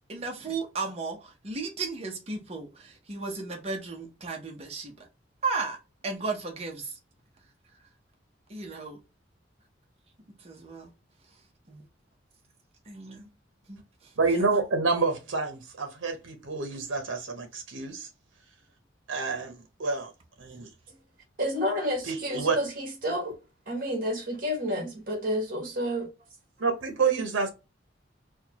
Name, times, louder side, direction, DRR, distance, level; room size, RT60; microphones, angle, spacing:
voice 1, 0.1-4.9 5.4-7.0 8.5-9.0 10.4-10.9 11.7-11.8 12.9-13.3 13.7-14.1, right 4 dB, 30° right, 0.7 m, -35 dB
voice 2, 14.2-18.1 19.1-20.1 20.4-20.7 22.1-22.6 26.6-27.5, right 4 dB, 85° right, 0.7 m, -28 dB
voice 3, 21.4-23.4 23.7-26.1, equal, 45° right, 1.2 m, -30 dB
4.4 x 2.2 x 2.8 m
head